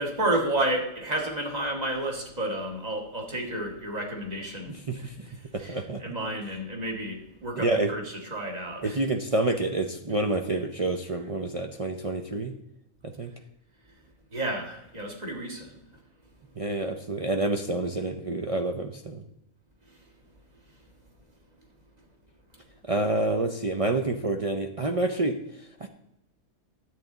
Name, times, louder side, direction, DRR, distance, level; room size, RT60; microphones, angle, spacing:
voice 1, 0.0-9.0 14.3-15.8, right 1 dB, 30° right, 1 dB, 1.9 m, -31 dB
voice 2, 4.7-5.1 5.7-6.0 7.6-7.9 8.8-12.5 13.0-13.3 16.6-19.2 22.9-25.9, right 2 dB, 55° right, 4 dB, 0.3 m, -28 dB
10.5 x 8.2 x 3.9 m, 0.86 s
omnidirectional pair, 1.5 m